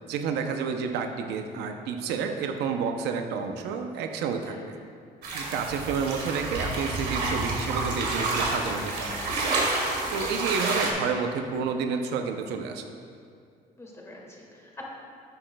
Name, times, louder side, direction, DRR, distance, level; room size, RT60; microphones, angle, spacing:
voice 1, 0.0-4.8 5.3-9.2 10.1-12.8, right 5 dB, 85° right, 5 dB, 0.6 m, -30 dB
sound 1, 5.2-10.9, right 2 dB, 70° right, 1.8 m, -29 dB
voice 2, 13.8-14.8, left 1 dB, 15° left, -2 dB, 1.7 m, -47 dB
12.5 x 7.9 x 2.2 m, 2.3 s
cardioid pair, 110°, 17 cm